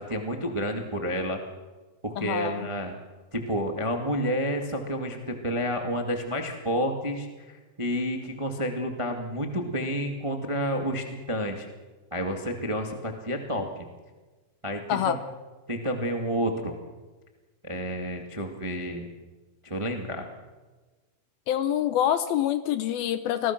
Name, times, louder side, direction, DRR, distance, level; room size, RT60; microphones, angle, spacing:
voice 1, 0.0-1.4 2.0-2.9 3.3-11.7 12.1-13.7 14.6-15.1 15.7-16.7 17.6-19.1 19.6-20.2, equal, 55° right, 3 dB, 0.3 m, -30 dB
voice 2, 2.2-2.7 14.9-15.2 21.5-23.5, left 11 dB, 75° left, 11 dB, 2.4 m, -26 dB
28.0 x 20.0 x 6.1 m, 1.3 s
omnidirectional pair, 5.0 m